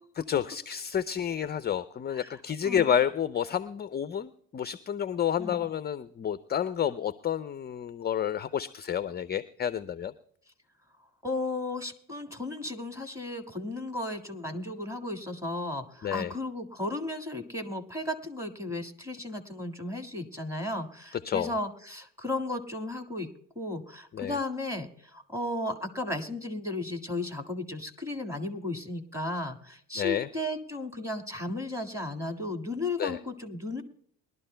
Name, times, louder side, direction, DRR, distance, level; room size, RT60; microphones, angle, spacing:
voice 1, 0.3-10.1 16.0-16.3 21.2-21.5 24.1-24.4 30.0-30.3 33.0-33.2, left 9 dB, 25° left, 15 dB, 0.4 m, -30 dB
voice 2, 2.1-2.9 5.4-5.6 11.2-23.3 23.6-33.8, left 2 dB, 5° right, 4 dB, 1.9 m, -35 dB
22.0 x 12.0 x 2.2 m, 0.64 s
hypercardioid pair, 60°, 46 cm